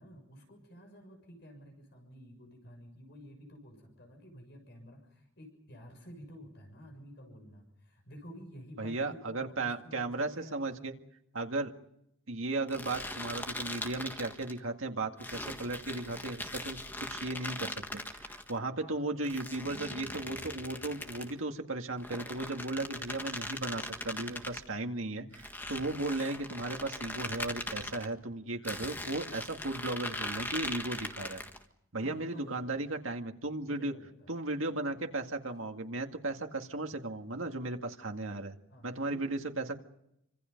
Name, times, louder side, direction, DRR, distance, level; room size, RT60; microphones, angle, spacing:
voice 1, 0.0-10.9 18.8-19.4 32.0-32.7 33.6-34.3 38.7-39.3, equal, 55° left, 4 dB, 6.6 m, -51 dB
voice 2, 8.8-10.9 11.3-11.7 12.3-16.8 17.1-31.4 31.9-33.9 34.3-38.5 38.8-39.8, right 2 dB, 80° right, 4 dB, 2.0 m, -36 dB
sound 1, 12.7-14.6 15.2-18.5 19.2-21.4 22.0-24.6 25.3-28.1 28.6-31.6, left 1 dB, 10° left, 1.6 m, -40 dB
28.5 x 26.0 x 5.3 m, 0.80 s
head